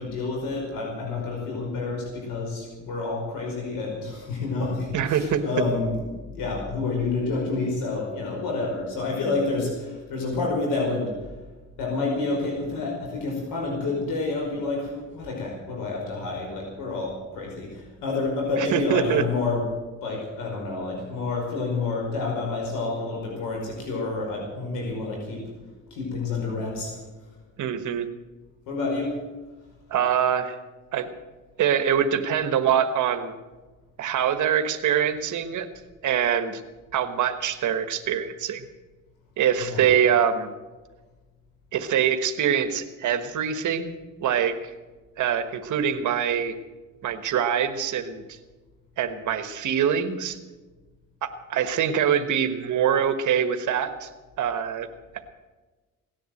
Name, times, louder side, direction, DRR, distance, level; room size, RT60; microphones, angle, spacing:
voice 1, 0.0-6.1 6.3-11.4 11.8-19.7 20.0-25.4 25.9-27.3 28.7-29.2 39.5-40.0, left 3 dB, 85° left, -1 dB, 5.1 m, -29 dB
voice 2, 4.9-5.4 18.6-19.2 27.6-28.1 29.9-30.6 30.9-31.1 31.6-33.3 34.0-35.7 36.0-36.6 36.9-38.6 39.4-40.5 41.7-43.9 44.2-44.7 45.2-46.5 47.0-48.4 49.0-50.4 51.2-54.1 54.4-54.9, right 8 dB, 65° right, 8 dB, 1.4 m, -24 dB
17.5 x 10.5 x 7.9 m, 1.3 s
cardioid pair, 125°, 32 cm